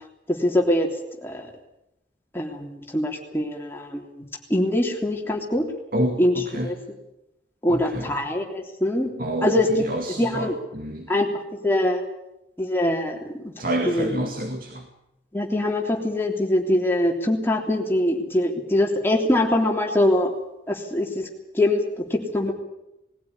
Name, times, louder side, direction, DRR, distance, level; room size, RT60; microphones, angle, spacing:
voice 1, 0.3-0.9 1.2-1.5 2.3-5.7 6.2-6.3 6.6-6.8 7.6-9.1 9.4-9.7 10.0-10.6 11.1-11.3 11.6-12.0 12.6-13.5 13.8-14.2 15.3-20.3 20.7-21.3 21.5-22.5, left 1 dB, 15° left, 0 dB, 3.3 m, -23 dB
voice 2, 5.9-6.7 7.7-8.1 9.2-11.1 13.6-14.9, right 1 dB, 50° right, 4 dB, 2.2 m, -28 dB
21.0 x 15.5 x 9.6 m, 0.88 s
head